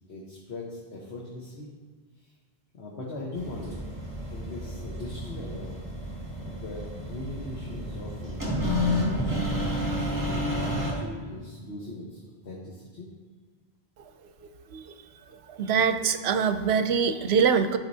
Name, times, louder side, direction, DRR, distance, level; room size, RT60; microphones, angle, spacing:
voice 1, 0.1-1.7 2.2-2.3 2.7-3.8 4.3-5.7 6.4-9.5 10.0-13.1, left 2 dB, 90° left, -4 dB, 1.4 m, -40 dB
sound 1, 3.3-10.9, left 1 dB, 15° right, 2.2 m, -30 dB
voice 2, 14.4-14.9 15.5-17.8, right 6 dB, 80° right, 8 dB, 0.8 m, -24 dB
13.5 x 5.1 x 2.7 m, 1.5 s
omnidirectional pair, 1.1 m